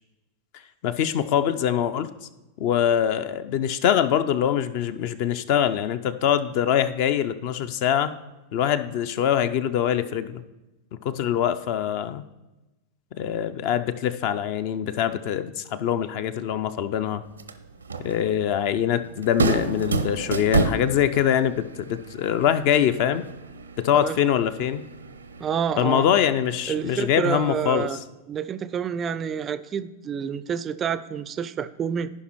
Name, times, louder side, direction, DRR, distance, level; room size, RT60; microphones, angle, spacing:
voice 1, 0.8-2.1 2.6-8.1 8.5-10.4 11.0-12.2 13.2-17.2 18.0-23.2 23.8-24.8 25.8-27.9, left 9 dB, 45° left, 12 dB, 0.4 m, -23 dB
sound 1, 17.2-27.8, right 4 dB, 75° right, 0.5 m, -31 dB
voice 2, 25.4-26.1 26.7-28.0 28.3-32.1, right 7 dB, 25° right, 14 dB, 0.3 m, -28 dB
15.0 x 5.4 x 3.1 m, 1.0 s
figure-of-eight pair, 90°, 0 cm